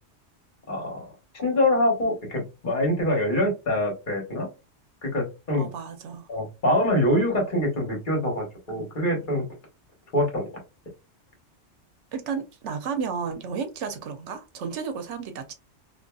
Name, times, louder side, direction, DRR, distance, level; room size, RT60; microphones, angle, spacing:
voice 1, 0.7-1.1 1.3-4.5 5.0-5.7 6.3-9.4 10.1-10.4, left 1 dB, 45° left, 1.2 m, -24 dB
voice 2, 5.6-6.3 12.1-15.5, right 6 dB, 75° right, 0.9 m, -32 dB
2.6 x 2.5 x 2.2 m
omnidirectional pair, 1.3 m